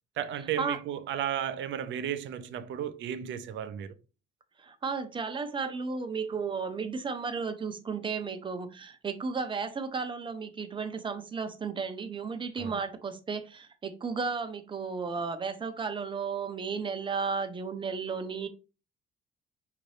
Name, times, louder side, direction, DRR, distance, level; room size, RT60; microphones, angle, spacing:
voice 1, 0.2-4.0 12.6-12.8, right 9 dB, 65° right, 0.5 m, -34 dB
voice 2, 4.6-18.5, right 5 dB, 25° right, 0.6 m, -34 dB
5.8 x 2.6 x 3.2 m
cardioid pair, 125°, 21 cm